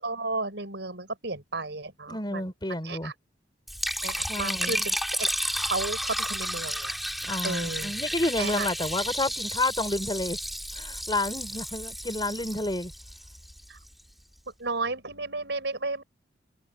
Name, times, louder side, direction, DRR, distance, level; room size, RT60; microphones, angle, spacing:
voice 1, 0.0-2.4 2.8-3.1 4.0-5.3 5.6-6.9 7.4-7.9 8.4-8.7 13.7-13.8 14.6-16.0, right 3 dB, 65° right, 6.9 m, -33 dB
voice 2, 2.1-3.1 4.3-4.8 7.2-10.4 10.8-12.9, left 2 dB, 25° left, 7.1 m, -30 dB
Liquid, 3.7-13.9, equal, ahead, 3.4 m, -32 dB
head